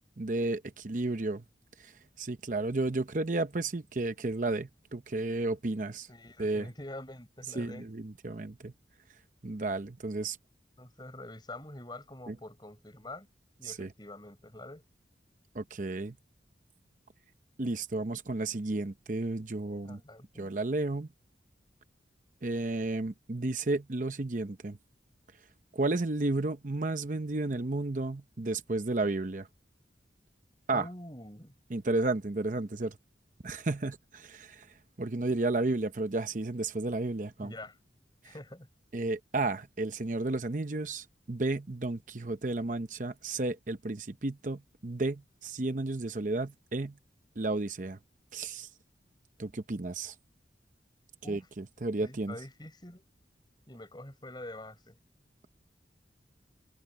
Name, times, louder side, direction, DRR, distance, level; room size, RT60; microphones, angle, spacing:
voice 1, 0.0-1.4 1.8-6.1 6.4-6.7 7.6-8.7 9.4-10.4 12.3-12.4 13.6-13.9 15.5-16.1 17.6-20.0 20.4-21.1 22.4-24.8 25.7-29.5 30.7-30.9 31.7-33.0 33.4-34.7 35.0-37.5 38.2-38.3 38.9-46.9 47.4-48.0 48.3-48.7 49.4-50.1 51.3-52.3, right 2 dB, 45° right, 0.8 m, -32 dB
voice 2, 6.1-7.9 10.8-13.3 13.6-14.8 19.8-20.5 30.7-31.5 37.4-37.8 38.2-38.7 51.2-51.5 52.0-53.0 53.7-55.0, left 1 dB, 25° left, 6.1 m, -46 dB
head